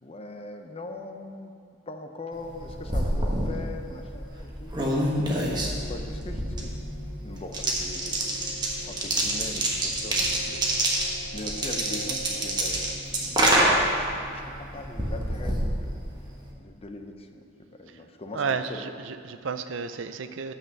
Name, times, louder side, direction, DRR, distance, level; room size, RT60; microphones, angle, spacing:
voice 1, 0.0-1.5 1.9-4.7 5.2-6.7 7.2-8.6 8.8-11.1 11.3-13.7 14.2-16.0 16.5-17.5 17.8-18.9, left 2 dB, 30° left, 5 dB, 0.7 m, -41 dB
sound 1, 2.4-16.5, right 1 dB, 25° right, 1.3 m, -27 dB
sound 2, 5.3-14.0, equal, 60° left, 1.0 m, -43 dB
voice 2, 18.3-20.5, right 5 dB, 80° right, 10 dB, 0.5 m, -32 dB
9.5 x 5.9 x 6.5 m, 2.5 s
head